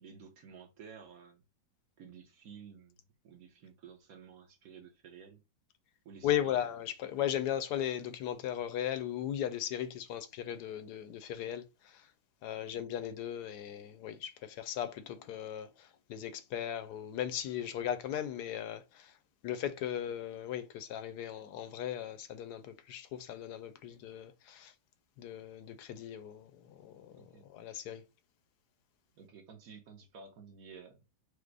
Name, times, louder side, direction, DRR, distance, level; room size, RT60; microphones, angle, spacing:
voice 1, 0.0-1.4 2.0-3.0 3.2-5.4 6.0-6.7 12.7-12.8 23.8-24.0 27.2-27.5 29.1-31.0, right 6 dB, 60° right, 1.1 m, -53 dB
voice 2, 6.2-12.1 12.4-19.2 19.4-24.7 25.2-28.0, left 10 dB, 70° left, 1.1 m, -37 dB
5.0 x 2.0 x 4.6 m
omnidirectional pair, 1.9 m